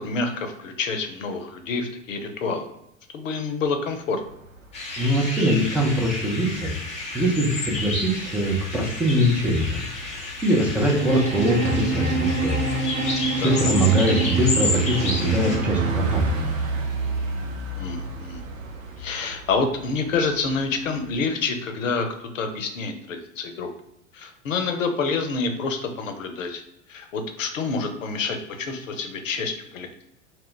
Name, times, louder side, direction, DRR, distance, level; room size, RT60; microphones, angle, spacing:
voice 1, 0.0-2.7 3.1-4.2 13.4-13.7 17.8-18.4 19.0-22.1 22.3-23.7 24.1-26.6 26.9-30.0, left 4 dB, 75° left, 6 dB, 0.6 m, -28 dB
Bus, 4.0-21.1, right 3 dB, 80° right, 0.6 m, -34 dB
sound 1, 4.7-15.6, left 2 dB, 15° left, 0.7 m, -31 dB
voice 2, 5.0-6.7 7.1-12.6 13.0-13.1 13.3-16.4, equal, 5° right, -3 dB, 0.3 m, -22 dB
sound 2, 10.9-16.9, right 3 dB, 40° right, 0.7 m, -28 dB
2.1 x 2.1 x 3.7 m, 0.80 s
figure-of-eight pair, 85°, 39 cm